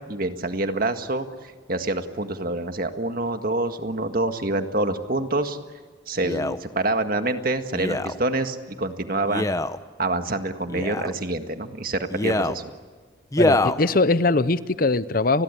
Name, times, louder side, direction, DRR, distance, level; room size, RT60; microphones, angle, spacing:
voice 1, 0.0-5.6 6.1-9.5 10.0-12.7, right 2 dB, 45° right, 7 dB, 1.8 m, -26 dB
Male speech man speaking, 6.2-6.6 7.7-8.2 9.3-9.8 10.7-11.1 12.1-12.6 13.3-13.8 14.5-14.6, left 1 dB, 15° left, 0.8 m, -24 dB
voice 2, 13.4-15.4, left 3 dB, 45° left, 15 dB, 0.8 m, -21 dB
30.0 x 21.5 x 8.4 m, 1.5 s
head